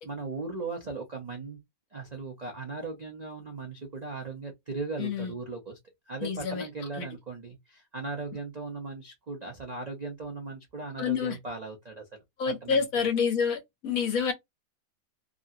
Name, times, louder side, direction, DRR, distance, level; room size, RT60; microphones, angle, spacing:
voice 1, 0.0-1.6 1.9-5.8 6.1-13.1, right 3 dB, 55° right, 0.4 m, -38 dB
voice 2, 5.0-5.3 6.2-6.7 7.0-7.1 11.0-11.4 12.4-14.3, left 6 dB, 60° left, 1.1 m, -28 dB
2.9 x 2.5 x 2.6 m
omnidirectional pair, 1.8 m